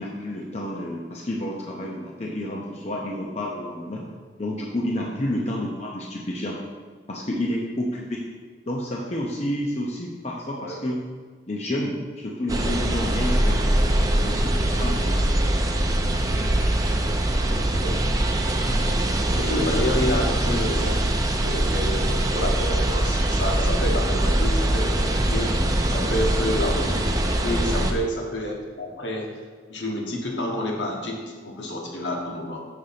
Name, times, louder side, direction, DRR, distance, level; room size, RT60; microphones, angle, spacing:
voice 1, 0.0-4.0 4.4-6.6 7.1-8.2 8.7-11.0 11.5-13.6 14.2-15.2 26.0-26.1, left 1 dB, 35° left, -2 dB, 0.7 m, -30 dB
sound 1, 12.5-27.9, right 1 dB, 20° right, 0.5 m, -22 dB
voice 2, 19.4-21.0 21.4-29.4 29.7-32.7, left 1 dB, 70° left, 0 dB, 1.2 m, -29 dB
6.6 x 3.9 x 5.7 m, 1.5 s
head